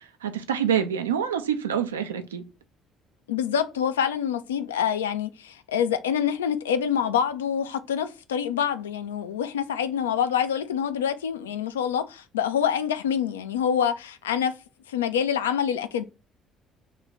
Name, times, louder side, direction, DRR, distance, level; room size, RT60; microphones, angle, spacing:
voice 1, 0.0-2.5, right 8 dB, 75° right, 0.4 m, -26 dB
voice 2, 3.3-14.5 14.9-16.0, left 8 dB, 75° left, 0.3 m, -26 dB
3.1 x 2.2 x 3.9 m
figure-of-eight pair, 50°, 0 cm